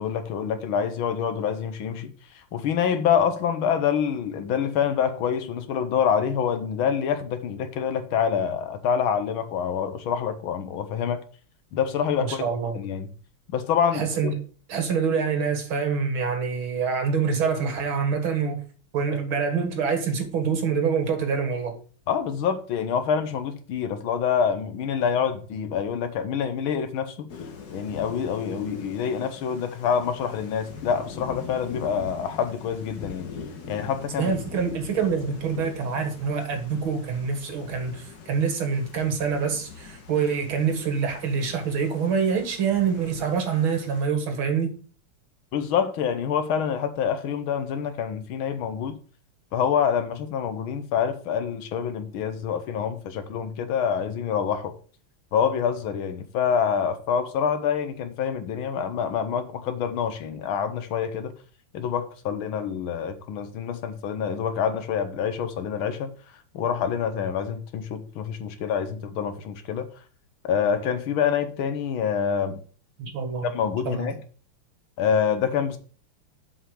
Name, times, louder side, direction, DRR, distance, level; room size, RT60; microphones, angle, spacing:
voice 1, 0.0-2.1 2.5-11.2 11.7-12.4 12.7-13.1 13.5-14.3 22.1-27.3 27.7-33.3 33.7-34.3 45.5-49.0 49.5-54.7 55.3-61.3 61.7-66.1 66.5-69.9 70.4-72.6 73.4-74.2 75.0-75.8, left 7 dB, 70° left, 1.6 m, -26 dB
voice 2, 12.2-12.8 13.9-14.3 14.7-18.6 18.9-21.7 34.2-44.8 73.0-73.5 73.8-74.2, right 6 dB, 70° right, 2.4 m, -26 dB
Thunder / Rain, 27.3-44.0, left 5 dB, 50° left, 1.6 m, -42 dB
7.6 x 5.8 x 4.9 m
omnidirectional pair, 2.4 m